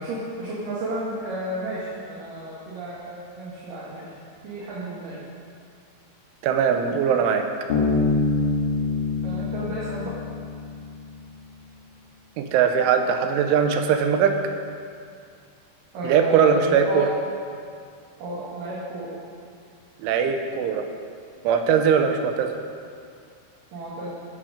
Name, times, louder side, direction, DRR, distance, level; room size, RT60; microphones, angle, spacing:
voice 1, 0.0-4.1 4.4-5.2 9.2-10.2 15.9-17.1 18.2-19.1 23.7-24.1, right 1 dB, 55° right, -7 dB, 3.1 m, -32 dB
voice 2, 6.4-7.4 12.4-14.3 16.0-17.1 20.0-20.8 21.4-22.5, right 7 dB, 85° right, 6 dB, 3.4 m, -20 dB
Bass guitar, 7.7-11.1, left 3 dB, 55° left, 3.2 m, -25 dB
14.0 x 10.5 x 5.1 m, 2.3 s
omnidirectional pair, 5.4 m